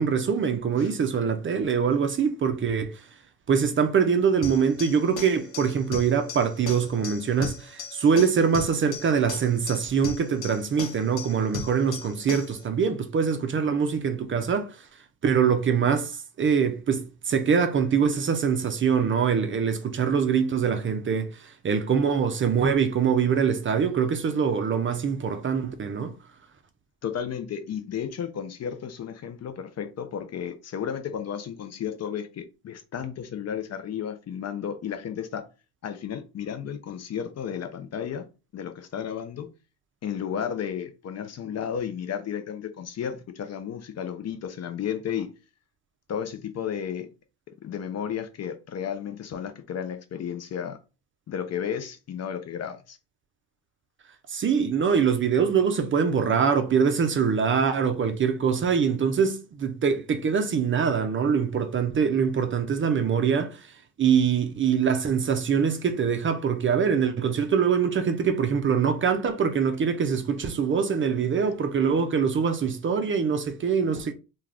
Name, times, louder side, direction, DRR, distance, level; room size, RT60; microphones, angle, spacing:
voice 1, 0.0-3.1 3.5-14.9 15.2-26.2 54.3-74.1, right 6 dB, 30° right, 0.5 m, -24 dB
sound 1, 4.4-12.6, left 3 dB, 90° left, 0.8 m, -37 dB
voice 2, 27.0-35.4 35.8-38.3 38.5-39.5 40.0-45.3 46.1-47.1 47.6-50.8 51.3-53.0, left 8 dB, 40° left, 0.6 m, -33 dB
2.3 x 2.3 x 3.3 m
supercardioid pair, 70°, 39 cm